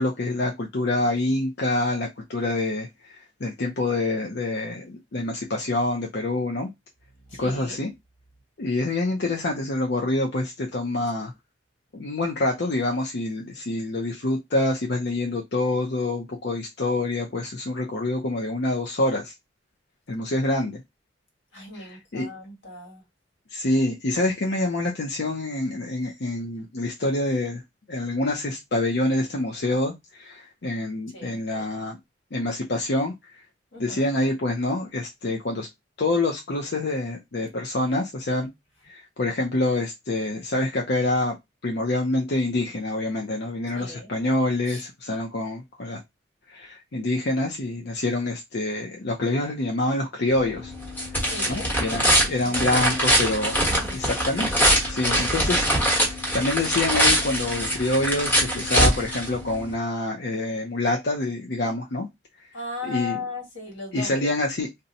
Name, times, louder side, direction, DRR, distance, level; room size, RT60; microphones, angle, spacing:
voice 1, 0.0-6.7 7.4-7.9 8.6-11.3 11.9-19.3 20.1-20.8 21.7-22.3 23.5-27.6 27.9-32.0 32.3-33.4 33.8-35.7 36.0-38.5 38.8-41.4 41.6-46.0 46.5-50.7 51.1-53.6 53.9-54.5 54.9-62.1 62.8-63.2 63.9-64.7, left 2 dB, 60° left, 0.6 m, -26 dB
voice 2, 7.2-7.8 21.5-23.0 31.1-31.7 33.7-34.1 43.7-44.1 44.7-44.8 51.2-51.7 52.4-53.0 53.7-54.1 62.5-64.3, left 3 dB, 85° left, 1.7 m, -37 dB
sound 1, 50.3-59.7, equal, 10° left, 1.2 m, -23 dB
2.7 x 2.2 x 3.9 m
head